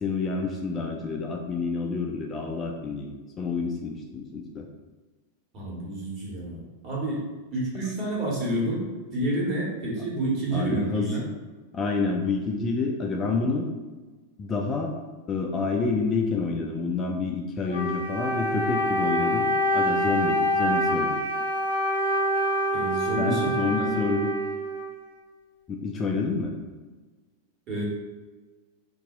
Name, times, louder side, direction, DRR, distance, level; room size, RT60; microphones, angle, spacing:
voice 1, 0.0-4.7 10.5-11.3 11.7-13.7 14.4-14.9 15.3-19.5 19.7-21.2 23.2-24.3 25.7-26.5, left 4 dB, 25° left, 1 dB, 0.3 m, -28 dB
voice 2, 5.5-7.2 7.5-8.8 9.1-11.2 22.7-24.0 27.7-27.8, right 1 dB, 35° right, -5 dB, 1.3 m, -29 dB
Wind instrument woodwind instrument, 17.7-25.2, equal, 85° right, 0.6 m, -26 dB
2.6 x 2.2 x 3.9 m, 1.3 s
figure-of-eight pair, 90°, 0 cm